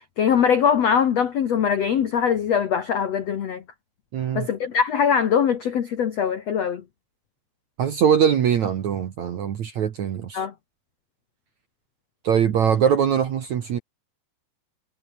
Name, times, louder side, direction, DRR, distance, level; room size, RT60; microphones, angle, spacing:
voice 1, 0.2-3.6 4.3-6.8 10.3-10.5, left 7 dB, 80° left, 1.4 m, -22 dB
voice 2, 4.1-4.5 7.8-10.4 12.2-13.8, right 8 dB, 60° right, 2.0 m, -22 dB
omnidirectional pair, 5.3 m